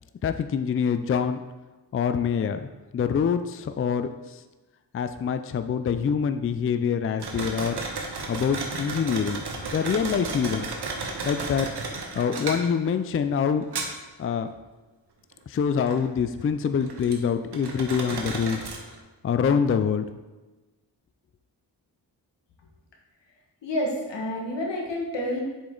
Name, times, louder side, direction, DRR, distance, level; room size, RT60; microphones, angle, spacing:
voice 1, 0.2-1.4 1.9-4.4 4.9-7.8 8.3-9.4 9.7-10.8 11.2-11.7 12.2-13.7 14.2-14.5 15.5-18.6 19.2-20.0, left 7 dB, 35° left, 10 dB, 0.4 m, -25 dB
sound 1, 7.2-13.1 13.6-14.3 15.3-15.4 15.8-17.1 17.5-19.0, right 3 dB, 70° right, 1.2 m, -33 dB
voice 2, 23.6-25.4, left 1 dB, 85° left, -1 dB, 1.6 m, -29 dB
7.0 x 5.2 x 3.8 m, 1.2 s
cardioid pair, 75°, 42 cm